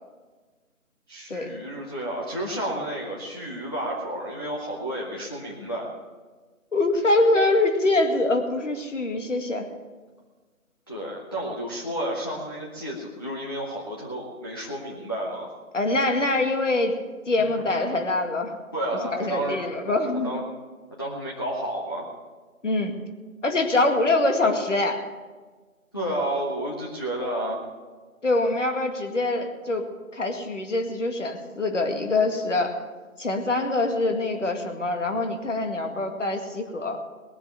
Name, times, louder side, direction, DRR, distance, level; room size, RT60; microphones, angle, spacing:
voice 1, 1.1-5.9 10.9-15.5 17.7-17.9 18.7-19.7 20.2-20.4 21.0-22.1 25.9-27.6, right 1 dB, 15° left, -6 dB, 0.8 m, -31 dB
voice 2, 6.7-9.6 15.7-17.0 17.3-18.5 19.1-20.3 22.6-23.0 23.4-25.0 28.2-32.8 33.2-37.0, left 2 dB, 60° left, 4 dB, 2.2 m, -24 dB
20.0 x 7.4 x 7.1 m, 1.4 s
figure-of-eight pair, 165°, 43 cm